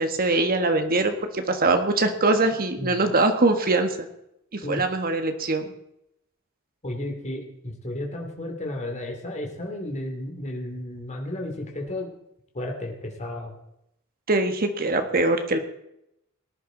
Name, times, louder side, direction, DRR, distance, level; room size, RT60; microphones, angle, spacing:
voice 1, 0.0-4.1 4.5-5.7 14.3-15.6, right 2 dB, 45° right, 7 dB, 1.5 m, -23 dB
voice 2, 6.8-12.1 12.5-13.5, left 1 dB, 35° left, 1 dB, 2.7 m, -33 dB
19.0 x 10.5 x 4.0 m, 0.80 s
head